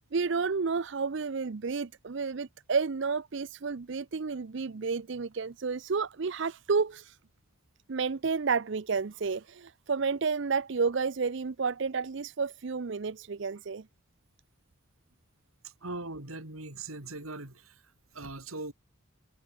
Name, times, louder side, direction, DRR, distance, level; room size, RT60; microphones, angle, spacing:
voice 1, 0.0-7.2 7.9-13.8, right 5 dB, 60° right, 0.5 m, -31 dB
voice 2, 15.8-17.7 18.1-18.7, right 2 dB, 85° right, 4.8 m, -40 dB
head